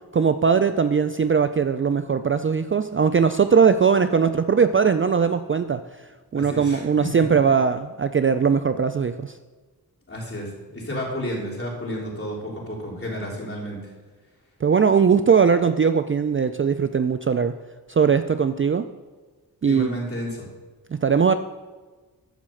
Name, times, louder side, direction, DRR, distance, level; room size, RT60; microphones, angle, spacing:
voice 1, 0.1-5.8 6.3-9.3 14.6-17.5 17.9-18.9 19.6-19.9 20.9-21.3, right 6 dB, 35° right, 10 dB, 0.4 m, -20 dB
voice 2, 6.3-6.9 7.1-7.3 10.1-13.8 19.7-20.5, equal, 35° left, -4 dB, 3.3 m, -31 dB
12.5 x 4.2 x 7.7 m, 1.3 s
wide cardioid pair, 80°, 38 cm